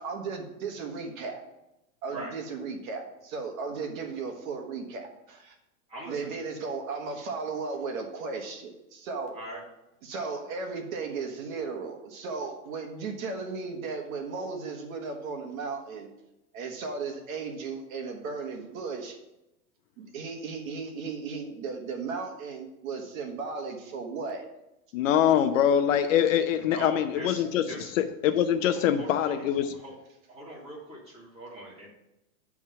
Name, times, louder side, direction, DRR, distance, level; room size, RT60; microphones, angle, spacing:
voice 1, 0.0-1.4 2.0-5.6 6.1-9.3 10.0-16.1 16.5-19.2 20.0-24.5, right 4 dB, 60° right, 3 dB, 1.5 m, -35 dB
voice 2, 5.9-6.4 9.3-9.6 26.6-27.9 28.7-29.5 29.7-29.9 30.3-31.9, right 1 dB, 15° right, -6 dB, 2.5 m, -41 dB
voice 3, 24.9-27.6 28.0-29.7, left 9 dB, 55° left, 9 dB, 0.6 m, -24 dB
9.5 x 3.6 x 5.6 m, 0.91 s
supercardioid pair, 150°, 47 cm